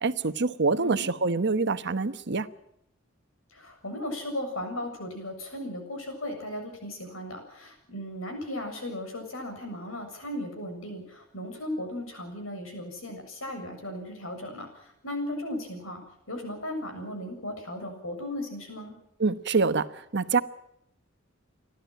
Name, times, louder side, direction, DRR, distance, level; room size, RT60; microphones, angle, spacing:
voice 1, 0.0-2.5 19.2-20.4, right 4 dB, 55° right, 1.1 m, -26 dB
voice 2, 3.5-19.0, left 1 dB, 70° left, 7.3 m, -36 dB
30.0 x 12.5 x 9.3 m
head